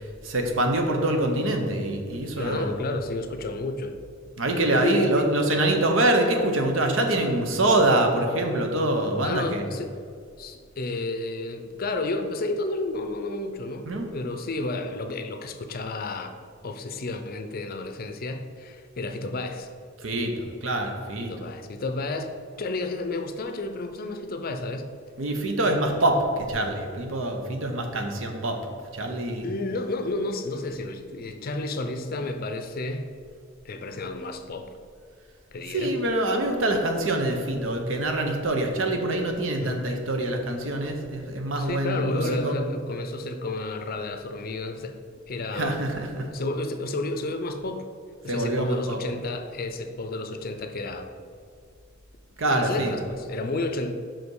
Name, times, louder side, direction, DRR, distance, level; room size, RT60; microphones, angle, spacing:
voice 1, 0.2-2.8 4.4-9.6 13.9-14.1 20.0-21.3 25.2-28.6 28.9-29.4 35.7-42.5 45.5-46.3 48.3-49.0 52.4-53.0, right 1 dB, 70° right, 4 dB, 0.9 m, -25 dB
voice 2, 2.4-4.0 4.7-5.3 8.0-8.3 9.2-10.0 10.4-16.3 16.6-19.7 21.2-22.3 22.6-24.9 29.4-33.1 33.6-34.7 35.5-36.0 39.6-39.8 41.6-45.0 45.3-45.8 46.3-47.9 48.2-51.1 52.5-53.9, left 2 dB, 45° left, 7 dB, 0.5 m, -31 dB
5.8 x 5.2 x 4.7 m, 2.3 s
head